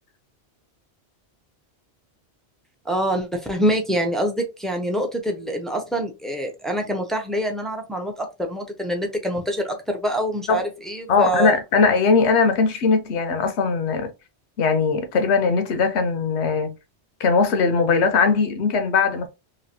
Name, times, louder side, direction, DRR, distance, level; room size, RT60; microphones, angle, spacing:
voice 1, 2.9-11.5, right 1 dB, ahead, 0.3 m, -25 dB
voice 2, 11.1-14.1 14.6-16.7 17.2-19.3, left 4 dB, 80° left, 0.9 m, -20 dB
3.0 x 2.5 x 2.6 m
omnidirectional pair, 1.1 m